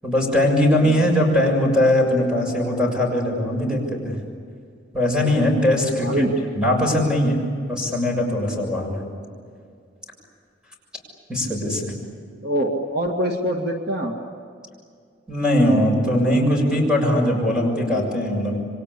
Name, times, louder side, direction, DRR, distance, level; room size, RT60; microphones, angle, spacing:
voice 1, 0.0-4.2 4.9-6.2 6.6-7.4 7.7-9.0 11.3-11.9 15.3-18.6, left 1 dB, 5° right, 0 dB, 7.1 m, -20 dB
voice 2, 0.8-1.3 6.0-6.3 12.4-14.1, right 1 dB, 55° right, 2 dB, 2.2 m, -24 dB
28.5 x 24.5 x 8.4 m, 2.2 s
head